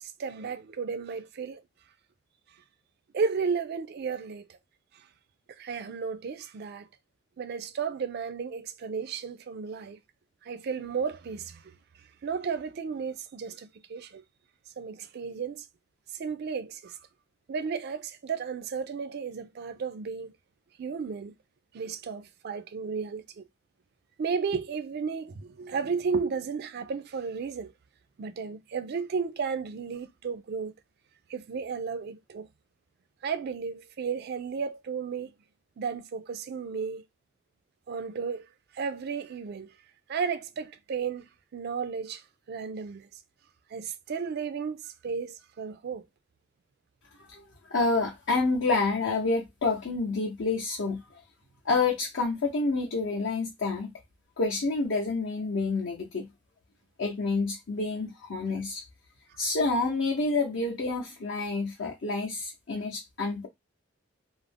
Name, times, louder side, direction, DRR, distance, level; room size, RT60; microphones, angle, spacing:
voice 1, 0.0-1.6 3.1-4.6 5.6-6.9 7.4-10.0 10.4-11.6 12.2-14.2 14.8-15.7 16.1-17.0 17.5-20.3 20.8-21.3 21.7-23.4 24.2-27.7 28.2-30.7 31.3-32.5 33.2-35.3 35.8-37.0 37.9-38.5 38.7-39.7 40.1-41.2 41.5-42.2 42.5-43.1 43.7-46.0, right 5 dB, 50° right, 0.3 m, -33 dB
voice 2, 47.7-51.2 51.6-53.9 54.4-56.3 57.0-58.8 59.4-63.5, left 3 dB, 60° left, 0.6 m, -28 dB
2.4 x 2.0 x 3.3 m
head